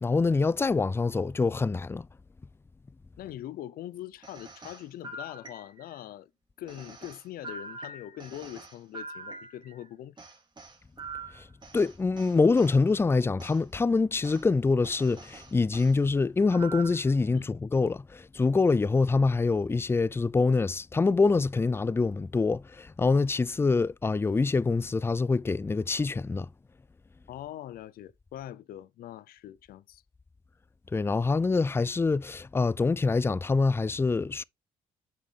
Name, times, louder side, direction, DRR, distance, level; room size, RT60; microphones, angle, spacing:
voice 1, 0.0-2.1 11.3-11.5 11.7-26.5 30.9-34.4, left 4 dB, 15° left, 0.3 m, -25 dB
voice 2, 3.2-6.3 6.6-10.2 17.3-17.5 27.3-30.0, left 12 dB, 70° left, 0.5 m, -42 dB
sound 1, 4.2-6.0 6.7-9.8 10.2-12.8 13.4-13.6 14.2-14.4 14.8-15.9 16.5-17.1, right 3 dB, 30° right, 2.7 m, -44 dB
7.4 x 5.8 x 3.3 m
supercardioid pair, 60°, 16 cm